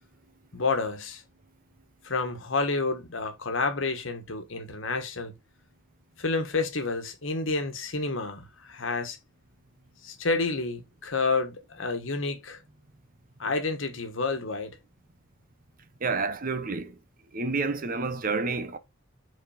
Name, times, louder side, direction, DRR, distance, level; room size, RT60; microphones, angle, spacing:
voice 1, 0.5-1.2 2.0-5.3 6.2-9.2 10.0-12.6 13.4-14.8, left 3 dB, 70° left, 1.4 m, -29 dB
voice 2, 16.0-17.0 17.3-18.8, right 4 dB, 45° right, 0.8 m, -29 dB
5.1 x 4.2 x 4.9 m
head